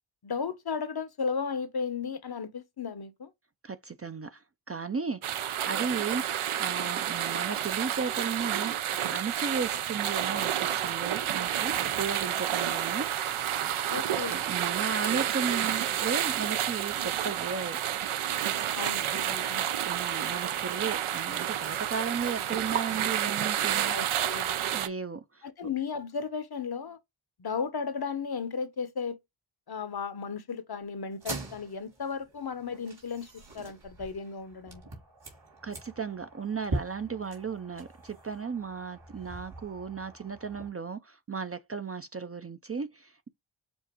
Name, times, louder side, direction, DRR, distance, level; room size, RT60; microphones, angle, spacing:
voice 1, 0.2-3.3 13.9-14.4 18.7-19.7 23.9-24.6 25.4-27.0 27.4-29.2 29.7-34.8, left 5 dB, 50° left, 0.8 m, -35 dB
voice 2, 3.6-8.8 9.1-13.1 14.3-17.8 19.6-24.0 24.7-25.5 35.6-43.3, right 5 dB, 30° right, 0.4 m, -35 dB
sound 1, 5.2-24.9, right 10 dB, 80° right, 0.6 m, -30 dB
sound 2, 31.1-40.7, right 2 dB, 65° right, 2.7 m, -42 dB
7.1 x 2.4 x 2.9 m
wide cardioid pair, 75°, 49 cm